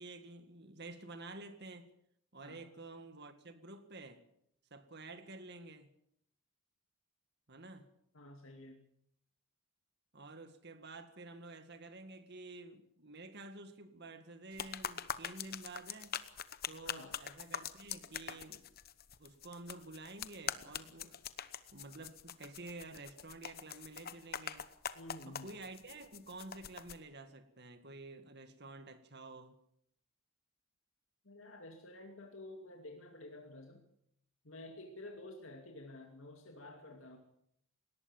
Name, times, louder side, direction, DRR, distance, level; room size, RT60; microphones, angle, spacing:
voice 1, 0.0-1.9 2.3-4.2 4.7-5.9 7.5-7.9 10.1-16.2 16.7-18.7 19.2-21.2 21.7-24.7 25.3-29.6, right 2 dB, 50° right, 2.0 m, -50 dB
voice 2, 8.1-8.8 16.8-17.2 24.9-25.5 31.2-33.8 34.4-37.2, left 2 dB, 60° left, 2.5 m, -51 dB
sound 1, 14.5-27.0, left 8 dB, 45° left, 1.0 m, -44 dB
21.0 x 18.5 x 7.3 m
head